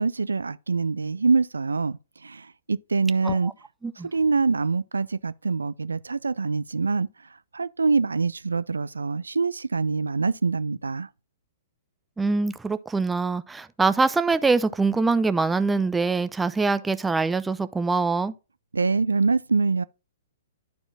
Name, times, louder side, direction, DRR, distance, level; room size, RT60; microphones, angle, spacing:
voice 1, 0.0-3.5 4.1-7.1 7.5-11.1 18.7-19.8, right 4 dB, 75° right, 0.4 m, -24 dB
voice 2, 12.2-18.3, right 4 dB, 10° right, 0.5 m, -24 dB
11.5 x 4.4 x 2.6 m
figure-of-eight pair, 115°, 0 cm